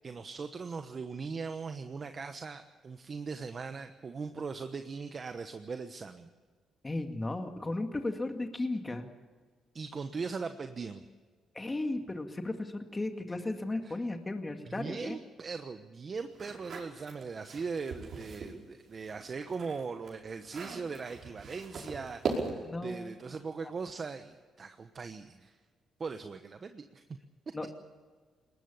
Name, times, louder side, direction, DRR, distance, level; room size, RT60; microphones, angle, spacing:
voice 1, 0.0-6.3 9.7-11.0 13.8-14.0 14.6-25.6 26.0-27.0, right 5 dB, 40° right, 8 dB, 1.1 m, -40 dB
voice 2, 6.8-9.1 11.5-15.2 22.6-23.1 23.6-23.7 27.5-27.7, left 2 dB, 20° left, 5 dB, 2.1 m, -35 dB
sound 1, 16.3-18.6 19.0-22.8, right 4 dB, 60° right, 5.3 m, -40 dB
21.5 x 19.5 x 7.1 m, 1.5 s
cardioid pair, 90°, 0 cm